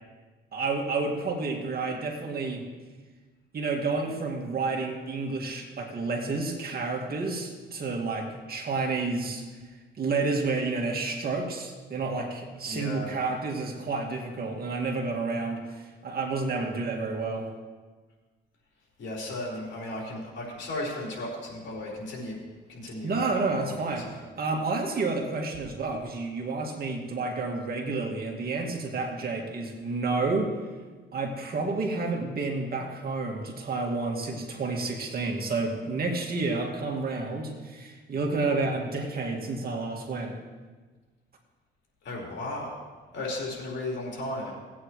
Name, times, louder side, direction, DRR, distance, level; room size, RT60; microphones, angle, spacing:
voice 1, 0.5-2.6 3.5-9.4 10.0-17.5 23.0-24.1 24.4-30.5 31.1-40.4, right 3 dB, 50° right, 1 dB, 2.1 m, -30 dB
voice 2, 12.7-13.1 19.0-22.4 22.7-23.2 23.5-23.7 24.0-24.2 42.0-42.7 43.1-44.5, left 1 dB, 65° left, -3 dB, 4.4 m, -35 dB
18.5 x 8.9 x 3.2 m, 1.4 s
cardioid pair, 90°, 20 cm